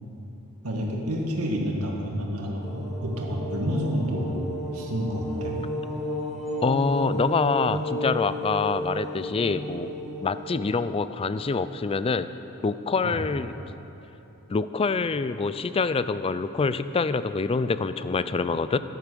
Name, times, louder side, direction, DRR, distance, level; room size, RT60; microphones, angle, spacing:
voice 1, 0.6-4.5 4.7-5.6 13.0-13.2, equal, 80° right, 0 dB, 1.9 m, -29 dB
sound 1, 2.6-10.6, equal, ahead, 2.3 m, -33 dB
voice 2, 6.6-9.9 10.2-12.3 12.6-13.5 14.5-18.8, left 4 dB, 25° left, 13 dB, 0.3 m, -26 dB
11.0 x 10.5 x 6.8 m, 3.0 s
head